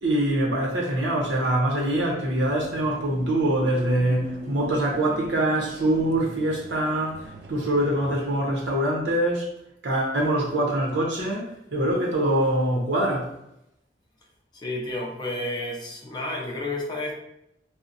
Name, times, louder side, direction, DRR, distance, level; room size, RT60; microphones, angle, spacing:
voice 1, 0.0-9.5 9.8-13.3, right 1 dB, 85° right, 0.8 m, -24 dB
sound 1, 2.4-8.4, right 2 dB, 60° right, 0.3 m, -41 dB
voice 2, 14.5-17.1, left 1 dB, 25° left, 0.5 m, -31 dB
2.7 x 2.1 x 2.5 m
head